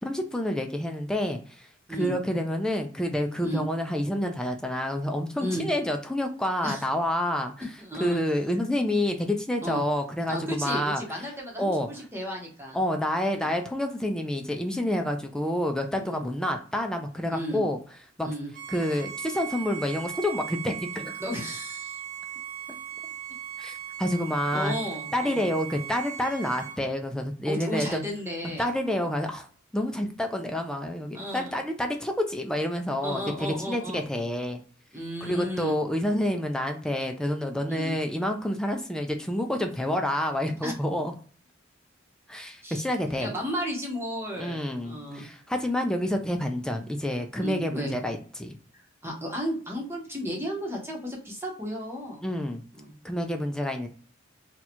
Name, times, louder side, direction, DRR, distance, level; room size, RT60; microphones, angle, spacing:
voice 1, 0.0-7.5 8.0-11.0 11.6-11.9 12.7-17.8 18.2-18.3 18.7-21.2 23.6-24.7 25.1-28.0 28.6-29.5 29.7-34.6 35.2-41.1 42.3-43.3 44.3-48.6 52.2-52.6 53.0-53.9, left 1 dB, 5° left, 4 dB, 0.3 m, -28 dB
voice 2, 7.8-8.2 9.6-9.8 10.3-12.8 13.3-13.5 16.0-16.3 17.3-17.6 18.2-18.5 21.2-22.0 24.5-25.5 27.4-29.1 31.1-31.5 33.0-34.0 34.9-35.8 37.7-38.0 40.6-40.7 42.6-42.8 43.2-45.2 47.4-47.9 49.0-52.3 52.8-52.9, equal, 15° right, -2 dB, 0.9 m, -34 dB
Bowed string instrument, 18.5-26.8, right 9 dB, 45° right, 0.6 m, -38 dB
2.9 x 2.3 x 4.1 m, 0.43 s
head